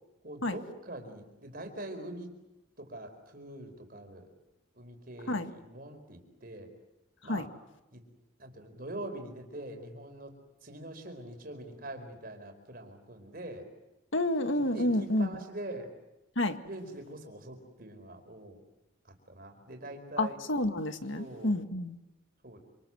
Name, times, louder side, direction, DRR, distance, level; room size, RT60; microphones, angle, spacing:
voice 1, 0.2-2.3 2.8-4.3 4.7-6.7 7.2-7.5 7.9-8.0 8.4-10.3 10.6-13.7 14.5-15.9 16.6-18.6 19.0-20.4 21.1-21.5 22.4-22.6, right 1 dB, 45° right, 6 dB, 4.7 m, -44 dB
voice 2, 14.1-15.3 16.4-16.6 20.2-21.9, left 1 dB, 65° left, 7 dB, 1.9 m, -29 dB
28.0 x 27.0 x 7.8 m, 0.98 s
head